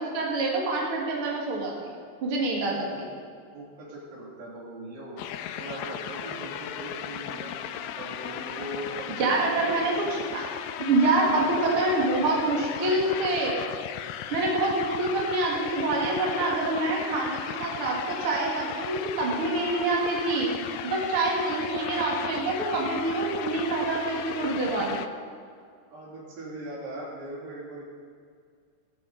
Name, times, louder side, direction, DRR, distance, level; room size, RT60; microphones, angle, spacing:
voice 1, 0.0-1.9 2.2-3.2 9.2-10.5 10.8-13.6 14.3-20.5 20.8-25.0, right 2 dB, 40° right, -2 dB, 2.7 m, -26 dB
voice 2, 2.7-3.0 3.5-5.2 5.6-10.2 11.2-13.1 25.9-27.8, right 1 dB, 85° right, -4 dB, 4.6 m, -40 dB
sound 1, 5.2-25.1, left 10 dB, 85° left, 1.7 m, -36 dB
16.5 x 12.5 x 4.1 m, 2.2 s
omnidirectional pair, 4.0 m